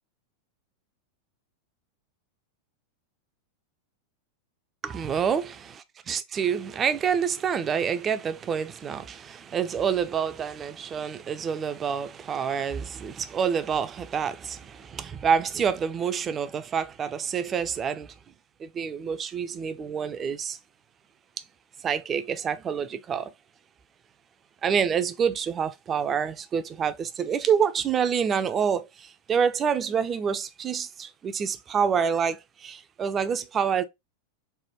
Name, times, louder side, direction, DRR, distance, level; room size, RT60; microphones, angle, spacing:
voice 1, 4.8-5.4 5.7-18.1 18.6-20.6 21.8-23.3 24.6-33.8, right 7 dB, 25° right, 0.3 m, -27 dB
3.2 x 2.1 x 2.8 m
figure-of-eight pair, 90°, 0 cm